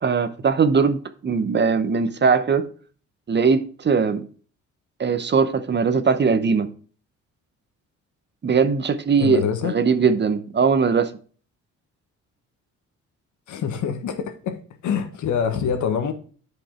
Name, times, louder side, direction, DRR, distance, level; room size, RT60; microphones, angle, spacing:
voice 1, 0.0-2.7 3.3-4.3 5.0-6.7 8.4-11.1, right 5 dB, 35° right, 0.9 m, -20 dB
voice 2, 9.2-9.8 13.5-16.1, left 7 dB, 75° left, 1.5 m, -25 dB
8.8 x 5.4 x 4.4 m
cardioid pair, 90°, 30 cm